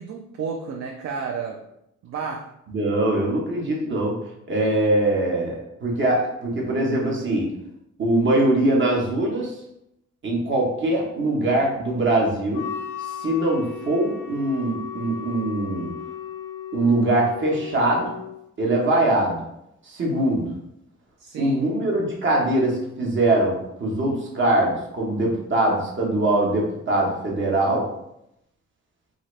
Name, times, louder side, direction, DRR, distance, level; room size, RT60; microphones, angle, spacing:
voice 1, 0.0-1.6 2.0-2.5 21.2-21.6, right 5 dB, 55° right, 2 dB, 0.4 m, -31 dB
voice 2, 2.7-4.2 4.5-7.5 8.0-9.5 10.2-12.6 13.2-15.9 16.7-18.1 18.6-19.4 19.9-20.5 21.4-27.9, right 1 dB, 40° right, -2 dB, 1.0 m, -22 dB
Wind instrument woodwind instrument, 12.5-18.4, left 9 dB, 80° left, 0.5 m, -35 dB
2.7 x 2.5 x 3.1 m, 0.82 s
cardioid pair, 90°, 30 cm